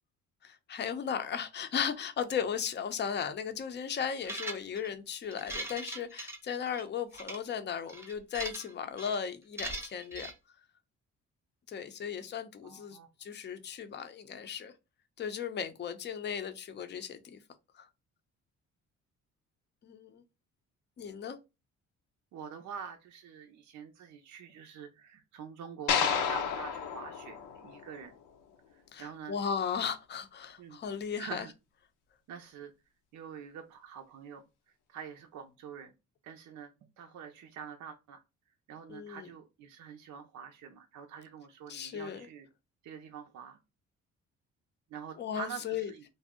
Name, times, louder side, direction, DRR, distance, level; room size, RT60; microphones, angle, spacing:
voice 1, 0.4-10.3 11.7-14.7 15.2-17.4 17.7-17.9 19.8-20.2 21.0-21.4 28.9-31.5 38.9-39.3 41.7-42.3 45.2-45.9, left 7 dB, 35° left, 0.5 m, -36 dB
sound 1, 4.2-4.9 5.3-6.8 7.1-7.4 7.9-8.7 9.0-9.2 9.6-10.3, right 2 dB, 10° right, 0.6 m, -40 dB
voice 2, 12.6-13.1 22.3-28.1 28.7-29.4 30.6-30.8 31.2-31.5 32.3-32.7 33.1-34.4 34.9-35.9 36.2-38.2 38.7-42.5 42.8-43.6 44.9-46.0, right 7 dB, 70° right, 0.5 m, -46 dB
sound 2, 25.9-28.2, left 7 dB, 90° left, 0.6 m, -31 dB
2.5 x 2.0 x 3.5 m
cardioid pair, 90°, 30 cm